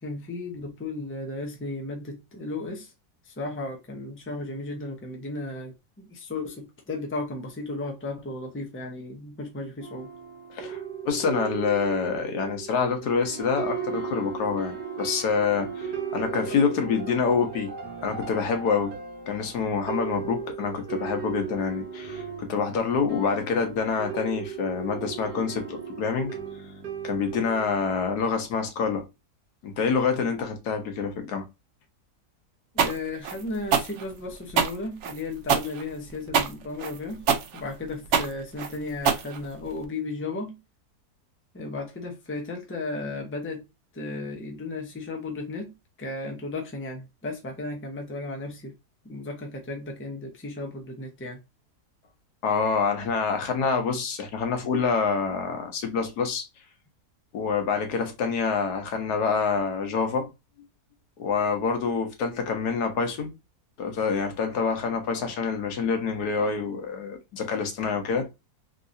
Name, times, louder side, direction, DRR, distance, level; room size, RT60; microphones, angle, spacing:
voice 1, 0.0-2.9 3.2-10.1 32.7-40.6 41.5-43.6 43.9-48.7 49.0-51.4, left 2 dB, 15° left, 0.5 m, -35 dB
sound 1, 9.8-27.9, right 7 dB, 80° right, 1.4 m, -37 dB
voice 2, 10.5-17.7 18.0-18.9 19.3-26.4 27.0-29.1 29.6-31.5 52.4-56.4 57.3-60.3 61.2-63.3 63.8-68.3, left 5 dB, 80° left, 1.4 m, -26 dB
sound 2, 32.8-39.9, right 7 dB, 65° right, 0.7 m, -25 dB
3.7 x 2.8 x 2.5 m
omnidirectional pair, 1.7 m